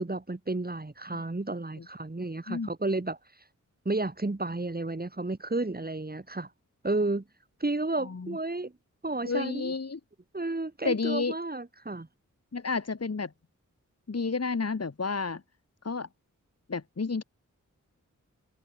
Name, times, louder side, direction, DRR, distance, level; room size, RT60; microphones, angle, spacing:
voice 1, 0.0-3.2 3.8-6.5 6.8-7.2 7.6-8.7 9.0-9.7 10.3-12.1, right 2 dB, 30° right, 4.1 m, -32 dB
voice 2, 8.0-8.4 9.2-10.0 10.8-11.3 12.5-13.3 14.1-15.4 15.8-16.1 16.7-17.2, left 4 dB, 50° left, 3.0 m, -30 dB
cardioid pair, 50°, 32 cm